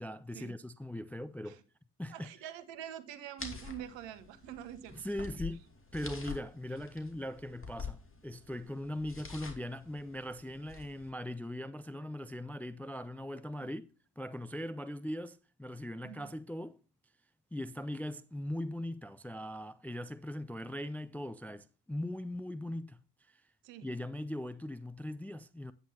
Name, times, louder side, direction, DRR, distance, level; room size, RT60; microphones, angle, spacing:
voice 1, 0.0-1.6 2.0-2.3 4.9-5.6 5.9-13.9 14.2-16.8 17.5-23.0 23.8-25.7, left 1 dB, 5° left, 0.4 m, -40 dB
voice 2, 2.1-5.0 16.0-16.3 23.6-23.9, right 10 dB, 70° right, 1.2 m, -45 dB
sound 1, 3.4-11.1, left 5 dB, 25° left, 2.6 m, -47 dB
9.1 x 9.0 x 2.8 m
hypercardioid pair, 55°, 46 cm